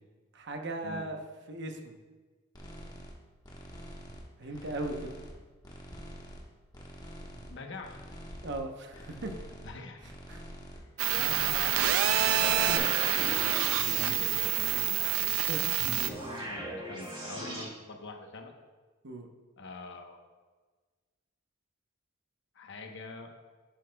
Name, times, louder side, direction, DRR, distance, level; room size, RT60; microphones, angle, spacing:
voice 1, 0.3-1.2 1.5-1.9 4.4-5.1 8.4-9.3 10.3-10.4 12.7-12.8 15.5-15.6 19.0-19.3, right 2 dB, 55° right, 4 dB, 0.9 m, -37 dB
sound 1, 2.5-3.1 3.4-4.3 4.5-5.4 5.6-6.5 6.7-7.5 7.8-8.6 8.9-9.7 10.0-10.8 11.1-11.9 12.2-12.8, equal, 20° left, 1.2 m, -46 dB
voice 2, 4.4-4.8 7.5-8.0 8.9-9.2 9.6-10.1 10.7-12.8 13.1-13.5 13.8-15.8 16.5-18.5 19.6-20.2 22.5-23.3, left 3 dB, 60° left, 3 dB, 1.0 m, -44 dB
sound 2, 11.0-16.1, right 10 dB, 70° right, 0.4 m, -27 dB
sound 3, 12.1-15.0 15.8-17.6, right 1 dB, 25° right, 2.4 m, -39 dB
10.5 x 9.5 x 2.3 m, 1.4 s
head